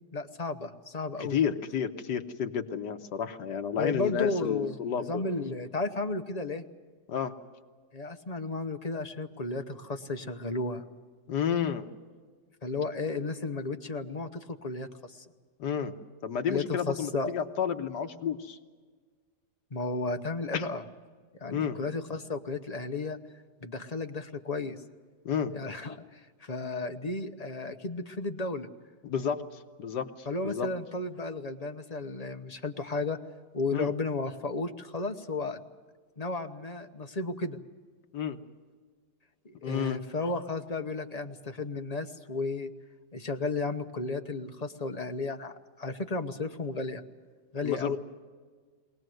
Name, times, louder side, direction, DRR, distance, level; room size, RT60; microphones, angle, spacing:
voice 1, 0.1-1.4 3.8-6.6 7.9-10.9 12.6-15.2 16.5-17.3 19.7-20.8 21.4-23.2 23.6-24.8 25.5-28.7 30.3-33.2 33.5-35.6 36.2-37.6 39.4-42.7 43.1-47.0 47.5-48.0, left 3 dB, 30° left, 6 dB, 0.8 m, -33 dB
voice 2, 1.2-5.2 7.1-7.3 11.3-11.9 15.6-15.9 16.2-18.6 20.5-20.7 21.5-21.8 25.3-25.5 29.0-29.4 29.8-30.7 33.7-33.9 38.1-38.4 39.6-40.0 47.6-48.0, left 7 dB, 80° left, 7 dB, 1.7 m, -31 dB
23.0 x 18.5 x 7.9 m, 1.5 s
omnidirectional pair, 1.8 m